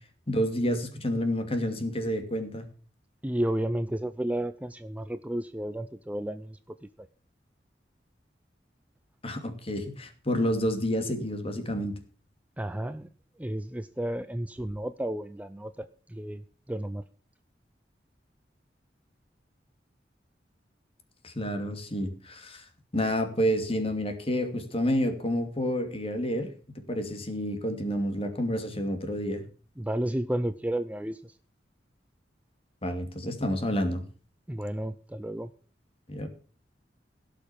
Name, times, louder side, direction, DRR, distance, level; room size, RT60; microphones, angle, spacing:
voice 1, 0.3-2.6 9.2-12.0 21.2-22.7 22.9-29.4 32.8-34.0 36.1-36.3, equal, 35° left, 7 dB, 2.6 m, -29 dB
voice 2, 3.2-6.6 12.6-13.1 13.4-16.4 16.7-17.0 29.8-31.3 34.5-35.5, right 1 dB, 10° right, 11 dB, 0.6 m, -32 dB
17.0 x 6.6 x 7.3 m, 0.40 s
head